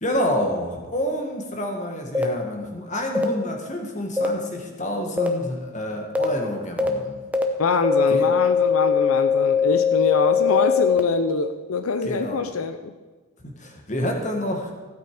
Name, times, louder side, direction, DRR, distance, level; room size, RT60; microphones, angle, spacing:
voice 1, 0.0-7.2 8.1-8.3 12.0-12.5 13.4-14.7, equal, 35° left, 2 dB, 1.9 m, -28 dB
sound 1, 2.1-2.2 3.1-3.2 4.2-4.3 5.2-5.3 6.1-6.2 6.8-6.9 7.3-7.4 7.8-11.0, left 6 dB, 5° right, 0.8 m, -20 dB
voice 2, 7.6-12.9, left 4 dB, 85° left, 9 dB, 0.6 m, -24 dB
15.5 x 8.6 x 5.0 m, 1.3 s
head